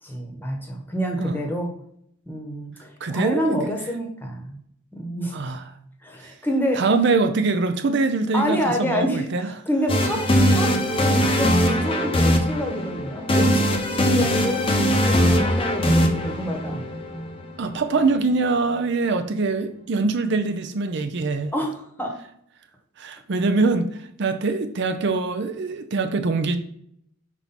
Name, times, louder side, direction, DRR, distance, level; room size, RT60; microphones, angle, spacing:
voice 1, 0.0-1.7 2.3-4.6 4.9-5.4 6.0-6.8 8.3-10.2 10.5-10.7 11.0-14.6 14.9-16.8 21.5-22.1, equal, 10° left, 2 dB, 1.1 m, -27 dB
voice 2, 3.0-3.4 5.3-5.6 6.7-9.5 17.6-21.5 23.0-26.6, right 3 dB, 55° right, 7 dB, 0.5 m, -23 dB
sound 1, 9.9-17.8, equal, 25° left, 0.7 m, -21 dB
5.5 x 4.5 x 4.2 m, 0.69 s
head